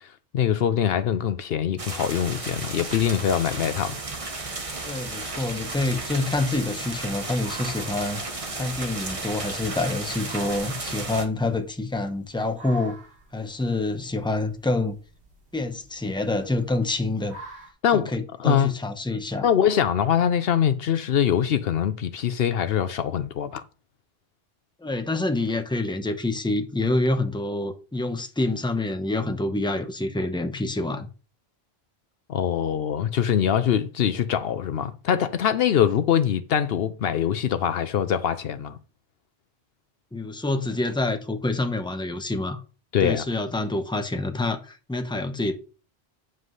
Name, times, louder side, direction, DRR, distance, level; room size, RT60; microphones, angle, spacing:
voice 1, 0.3-4.0 17.8-18.1 18.4-18.7 19.4-23.6 32.3-38.8 42.9-43.2, left 9 dB, 70° left, 0.8 m, -23 dB
sound 1, 1.8-11.2, right 3 dB, 35° right, 1.2 m, -34 dB
voice 2, 4.9-8.2 8.5-13.0 13.3-15.0 15.5-17.4 17.9-19.4 24.8-31.1 40.1-42.6 43.0-45.5, left 2 dB, 5° left, 0.9 m, -27 dB
sound 2, 7.3-17.7, right 3 dB, 85° right, 2.9 m, -50 dB
9.1 x 7.7 x 3.2 m
omnidirectional pair, 1.1 m